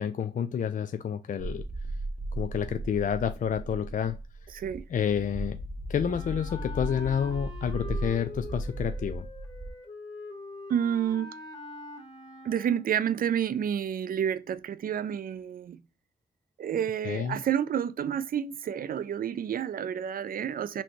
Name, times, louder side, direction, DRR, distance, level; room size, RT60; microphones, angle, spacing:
voice 1, 0.0-1.6 2.3-4.2 4.9-5.6 5.9-9.3 17.0-17.4, left 8 dB, 50° left, 0.4 m, -29 dB
sound 1, 1.4-9.7, right 1 dB, 35° right, 0.9 m, -36 dB
voice 2, 4.5-4.8 10.7-11.3 12.4-15.8 16.6-20.8, right 9 dB, 55° right, 0.4 m, -29 dB
Wind instrument woodwind instrument, 6.0-13.0, left 2 dB, 25° left, 1.4 m, -44 dB
4.2 x 2.8 x 3.0 m
cardioid pair, 55°, 17 cm